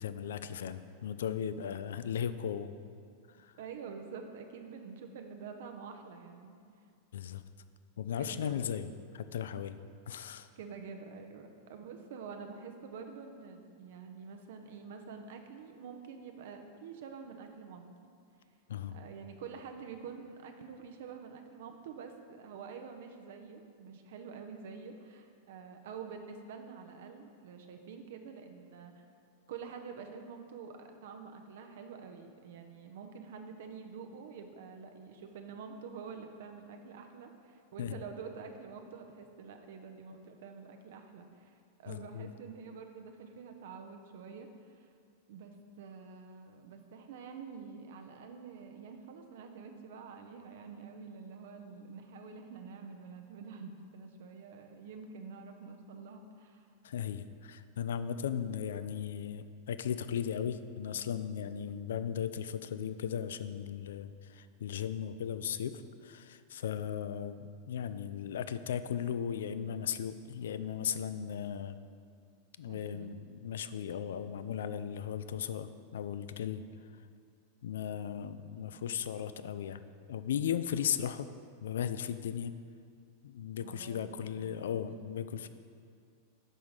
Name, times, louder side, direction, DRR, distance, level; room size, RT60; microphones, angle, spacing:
voice 1, 0.0-2.7 3.3-3.5 7.1-7.4 8.0-9.8 10.1-10.5 18.7-19.0 37.8-37.9 41.9-42.3 56.8-71.8 72.6-76.6 77.6-79.8 80.1-81.3 81.6-82.5 83.2-85.5, left 8 dB, 60° left, 12 dB, 0.3 m, -37 dB
voice 2, 3.6-6.6 8.2-8.6 10.6-18.1 18.9-29.1 29.5-44.9 45.3-56.7 72.7-73.1 83.6-84.9, right 5 dB, 55° right, 5 dB, 0.6 m, -47 dB
5.7 x 5.5 x 6.3 m, 2.3 s
figure-of-eight pair, 90°, 0 cm